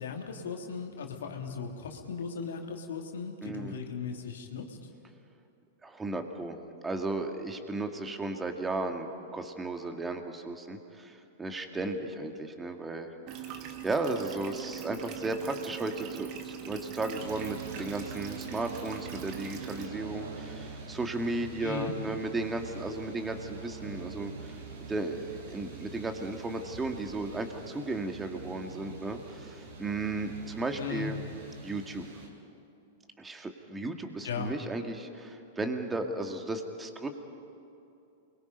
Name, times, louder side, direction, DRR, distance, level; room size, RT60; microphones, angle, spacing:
voice 1, 0.0-4.9 21.6-21.9 30.8-31.1 34.2-34.5, left 6 dB, 75° left, 2 dB, 2.7 m, -37 dB
voice 2, 3.4-3.8 5.8-6.5 6.8-9.1 9.3-13.1 13.4-13.5 13.8-24.5 24.9-31.2 31.6-32.0 33.2-37.1, right 2 dB, 15° right, 5 dB, 2.3 m, -35 dB
sound 1, 13.3-19.9, right 10 dB, 45° right, 2.3 m, -42 dB
sound 2, 17.2-32.3, right 4 dB, 70° right, 5.9 m, -45 dB
28.5 x 23.0 x 5.4 m, 2.8 s
hypercardioid pair, 105°, 0 cm